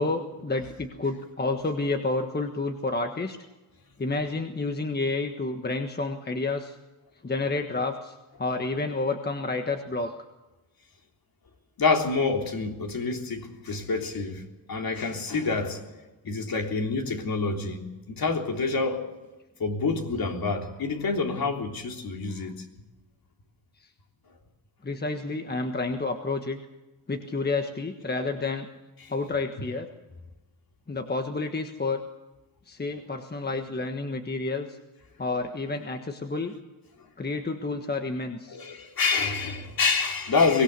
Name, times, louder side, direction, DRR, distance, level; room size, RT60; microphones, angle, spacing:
voice 1, 0.0-3.4 4.0-6.8 7.2-8.1 8.4-10.1 24.8-26.6 27.1-28.7 29.1-29.9 30.9-32.0 32.7-34.8 35.2-36.5 37.2-38.6, left 3 dB, 20° left, 1.4 m, -29 dB
voice 2, 11.8-15.8 16.2-19.1 19.6-22.7 29.0-29.1 38.5-40.6, left 4 dB, 50° left, 3.5 m, -27 dB
23.5 x 18.0 x 6.9 m
cardioid pair, 100°, 47 cm